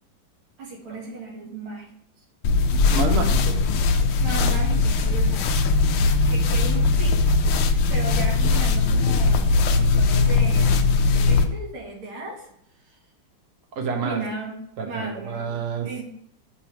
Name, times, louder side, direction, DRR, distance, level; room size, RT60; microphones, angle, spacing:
voice 1, 0.6-1.9 4.2-5.7 6.3-7.4 7.9-10.8 11.1-12.5 12.8-13.0 14.0-14.6 14.8-15.6 15.8-16.0, right 3 dB, 90° right, -2 dB, 2.6 m, -35 dB
sound 1, 2.4-11.5, left 3 dB, 75° left, 1.4 m, -20 dB
voice 2, 2.7-3.6 13.7-14.2 14.8-15.9, right 4 dB, 50° right, 3 dB, 1.0 m, -28 dB
6.0 x 3.3 x 5.8 m, 0.72 s
omnidirectional pair, 2.3 m